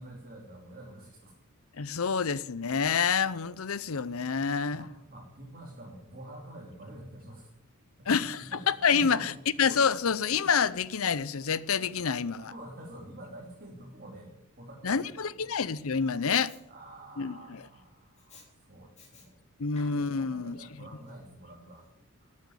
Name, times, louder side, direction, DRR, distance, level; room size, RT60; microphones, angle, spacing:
voice 1, 0.0-1.3 4.7-7.5 8.0-8.6 8.9-9.7 12.4-15.4 16.7-19.4 20.2-21.9 22.2-22.3, right 1 dB, 45° right, 3.0 m, -47 dB
voice 2, 1.8-4.9 8.1-9.3 9.6-12.5 14.8-16.5 17.2-17.6 19.6-20.6, left 6 dB, 70° left, 0.7 m, -28 dB
Respiratory sounds, 16.3-16.6 18.2-18.5 19.0-19.3 19.6-20.4 21.1-21.2, left 4 dB, 35° left, 4.1 m, -53 dB
13.0 x 8.7 x 9.7 m
head